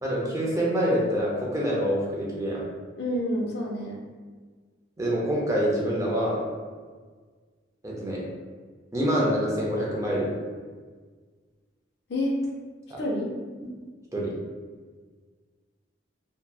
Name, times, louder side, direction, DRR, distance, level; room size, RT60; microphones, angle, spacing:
voice 1, 0.0-2.6 5.0-6.4 7.8-8.2 8.9-10.4 12.9-13.0 14.1-14.3, equal, 15° right, -4 dB, 0.4 m, -26 dB
voice 2, 3.0-4.0 12.1-12.3 13.0-13.3, left 1 dB, 60° left, -1 dB, 0.4 m, -28 dB
2.7 x 2.1 x 2.2 m, 1.5 s
head